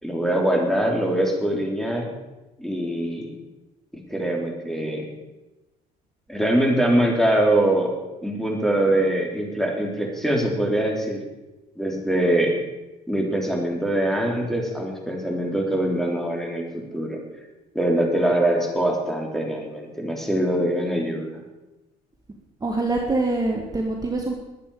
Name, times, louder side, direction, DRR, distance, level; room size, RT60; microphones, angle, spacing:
voice 1, 0.0-2.1 2.6-3.3 3.9-5.1 6.3-7.9 8.2-11.2 11.8-12.5 13.1-17.2 17.7-21.4, right 1 dB, ahead, 0 dB, 3.6 m, -23 dB
voice 2, 22.6-24.3, right 2 dB, 20° right, 0 dB, 1.8 m, -24 dB
20.5 x 9.0 x 4.9 m, 1.1 s
cardioid pair, 110°, 17 cm